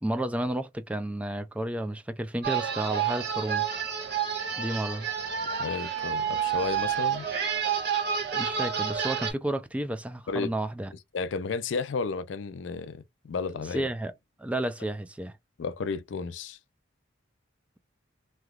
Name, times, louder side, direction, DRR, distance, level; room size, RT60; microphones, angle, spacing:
voice 1, 0.0-3.7 4.6-5.1 8.3-10.9 13.7-14.1 14.4-15.3, right 1 dB, 5° right, 0.3 m, -31 dB
sound 1, 2.4-9.3, right 8 dB, 55° right, 1.2 m, -29 dB
voice 2, 5.4-7.3 10.3-10.5 11.1-13.9 15.6-16.6, left 4 dB, 70° left, 0.4 m, -33 dB
3.2 x 2.9 x 2.3 m
head